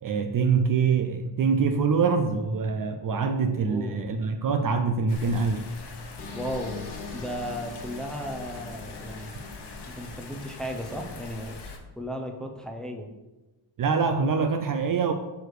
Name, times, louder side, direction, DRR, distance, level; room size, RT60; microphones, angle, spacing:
voice 1, 0.0-5.7 13.8-15.1, right 5 dB, 45° right, 7 dB, 0.4 m, -24 dB
voice 2, 3.1-4.1 6.3-6.9 7.1-9.3 9.9-11.6 12.0-13.1, equal, ahead, 2 dB, 0.6 m, -35 dB
sound 1, 5.1-11.8, left 3 dB, 55° left, 1.1 m, -42 dB
sound 2, 6.2-11.1, left 4 dB, 85° left, 1.8 m, -43 dB
6.3 x 4.8 x 4.8 m, 1.1 s
wide cardioid pair, 165°, 48 cm